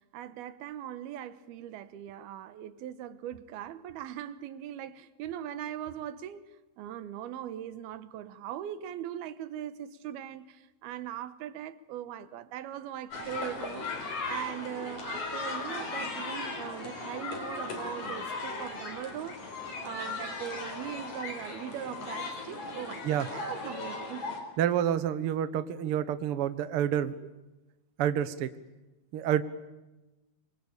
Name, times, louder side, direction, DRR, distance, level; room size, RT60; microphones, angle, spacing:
voice 1, 0.0-6.4 6.8-19.4 19.8-24.3, right 11 dB, 90° right, 3.1 m, -40 dB
sound 1, 13.1-24.4, left 3 dB, 50° left, 5.4 m, -37 dB
voice 2, 24.6-27.1 28.0-28.5 29.1-29.4, right 10 dB, 65° right, 1.4 m, -28 dB
27.0 x 24.0 x 8.7 m
omnidirectional pair, 4.3 m